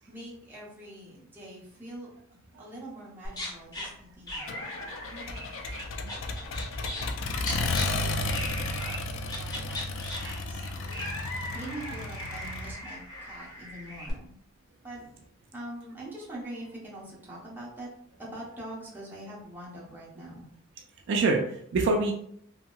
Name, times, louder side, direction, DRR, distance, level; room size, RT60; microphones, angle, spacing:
voice 1, 0.0-5.6 6.4-7.1 7.5-9.8 10.1-10.9 11.2-14.3 14.8-15.0 15.5-17.9 18.2-20.5, right 1 dB, 10° right, -6 dB, 0.8 m, -44 dB
sound 1, 3.2-3.9 4.3-7.1 7.4-7.8 8.3-9.0 9.3-14.1, left 1 dB, 20° left, 0.9 m, -38 dB
Accelerating revving vroom, 4.5-12.7, left 2 dB, 70° left, 0.4 m, -33 dB
voice 2, 21.1-22.1, right 3 dB, 60° right, 2 dB, 0.4 m, -26 dB
2.8 x 2.7 x 2.3 m, 0.67 s
head